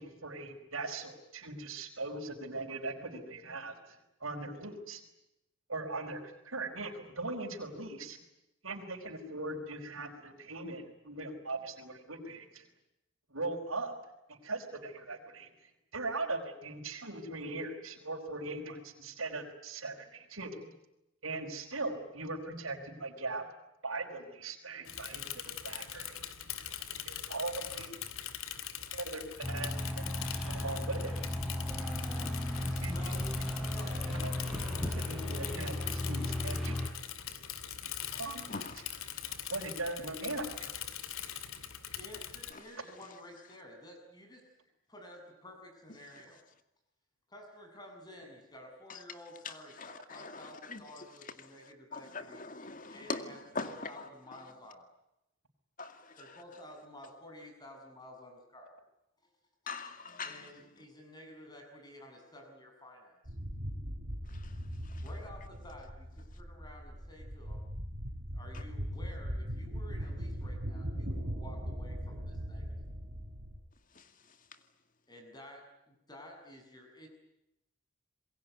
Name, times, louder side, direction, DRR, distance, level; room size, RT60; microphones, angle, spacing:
voice 1, 0.0-5.0 5.7-8.2 8.6-12.7 13.3-13.9 14.3-15.5 15.9-20.7 21.2-23.4 23.8-26.2 27.0-27.9 28.9-30.0 30.4-31.1 32.8-33.3 34.1-34.3 34.9-36.8 38.1-38.5 39.5-40.8, right 2 dB, 80° right, 1 dB, 4.8 m, -40 dB
Bicycle / Mechanisms, 24.8-42.5, left 10 dB, 80° left, 2.5 m, -42 dB
sound 1, 29.4-36.9, left 1 dB, ahead, 4.9 m, -35 dB
voice 2, 32.2-32.8 38.5-38.9 49.4-49.5 49.8-50.8 51.9-53.9 55.8-56.2 59.7-60.5 64.3-64.5 64.8-65.0 74.0-74.1, left 3 dB, 40° left, 9 dB, 2.2 m, -42 dB
voice 3, 32.9-33.2 33.6-34.0 41.9-44.5 44.9-46.4 47.3-52.4 52.9-54.9 56.2-58.7 60.2-63.3 65.0-67.7 68.3-72.7 75.1-77.1, left 1 dB, 20° left, 4 dB, 7.2 m, -52 dB
sound 2, 63.2-73.6, equal, 55° right, 4.8 m, -39 dB
27.5 x 22.0 x 9.4 m, 0.86 s
head